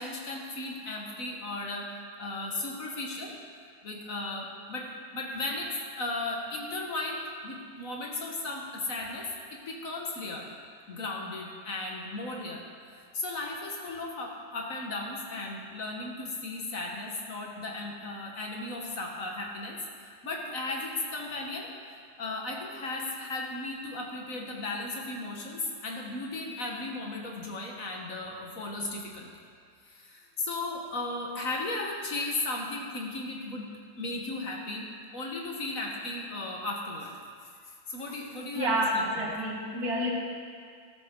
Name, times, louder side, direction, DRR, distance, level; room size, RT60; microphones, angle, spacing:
voice 1, 0.0-1.9 2.2-3.4 3.8-10.5 10.9-12.7 13.1-21.7 22.2-29.3 29.8-33.7 34.0-34.9 35.1-37.2 37.7-39.3, left 2 dB, 55° left, 0 dB, 1.7 m, -36 dB
voice 2, 38.6-40.1, equal, 60° right, -2 dB, 2.1 m, -28 dB
13.5 x 13.0 x 3.8 m, 2.1 s
omnidirectional pair, 1.8 m